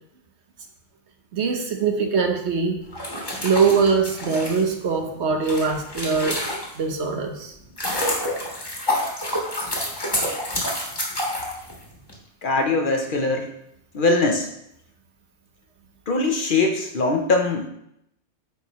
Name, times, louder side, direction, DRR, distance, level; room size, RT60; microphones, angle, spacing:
voice 1, 1.3-2.8 3.4-6.4 6.8-7.5, right 5 dB, 70° right, 4 dB, 1.2 m, -22 dB
sound 1, 2.9-7.0 7.4-12.1, left 1 dB, 20° left, 1.5 m, -28 dB
voice 2, 12.4-13.5 13.9-14.5 16.1-17.7, left 3 dB, 50° left, 3 dB, 0.8 m, -21 dB
9.2 x 4.7 x 3.0 m, 0.77 s
omnidirectional pair, 1.2 m